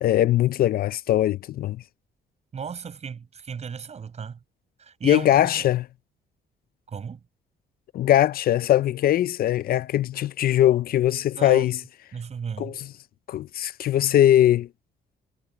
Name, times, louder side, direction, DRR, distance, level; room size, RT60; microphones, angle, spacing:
voice 1, 0.0-1.8 5.0-5.9 7.9-11.8 12.6-12.9 13.3-14.7, left 12 dB, 60° left, 0.5 m, -21 dB
voice 2, 2.5-4.4 4.8-5.7 6.9-7.2 11.4-11.7 12.1-12.8, right 6 dB, 40° right, 6.3 m, -35 dB
cardioid pair, 125°, 17 cm